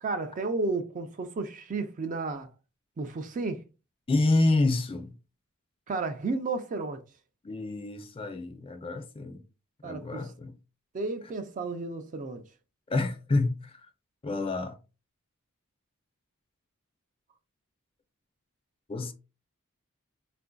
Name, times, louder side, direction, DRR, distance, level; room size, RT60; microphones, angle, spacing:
voice 1, 0.0-2.5 3.0-3.6 5.9-7.0 9.8-10.3 10.9-12.4, right 3 dB, 40° right, 0.4 m, -32 dB
voice 2, 4.1-5.2 7.4-9.4 9.8-10.5 12.9-13.8 14.2-14.8 18.9-19.1, left 2 dB, 25° left, 0.4 m, -28 dB
3.7 x 2.5 x 2.2 m
head